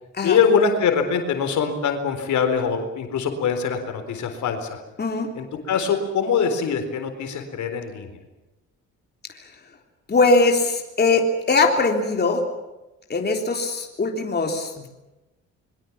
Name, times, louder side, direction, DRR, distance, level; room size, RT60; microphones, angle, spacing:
voice 1, 0.2-4.8 5.3-8.1, left 6 dB, 70° left, 6 dB, 4.1 m, -23 dB
voice 2, 5.0-5.3 10.1-12.4 13.1-14.9, left 3 dB, 35° left, 2 dB, 3.6 m, -21 dB
25.5 x 22.5 x 7.3 m, 1.0 s
cardioid pair, 90°, 30 cm